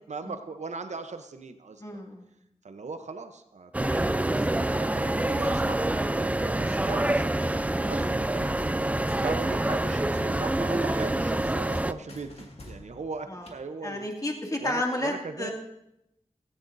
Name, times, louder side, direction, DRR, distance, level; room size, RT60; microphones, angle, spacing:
voice 1, 0.1-2.0 2.6-7.4 7.7-8.8 9.2-14.1 14.6-15.5, right 4 dB, 85° right, 8 dB, 0.8 m, -38 dB
voice 2, 1.8-2.2 13.3-13.5 13.8-15.5, left 1 dB, 30° left, 1 dB, 2.3 m, -31 dB
sound 1, 3.7-11.9, right 1 dB, 10° right, 0.4 m, -26 dB
sound 2, 11.7-13.6, left 2 dB, 60° left, 2.0 m, -50 dB
16.5 x 13.5 x 2.6 m, 0.84 s
wide cardioid pair, 75°, 12 cm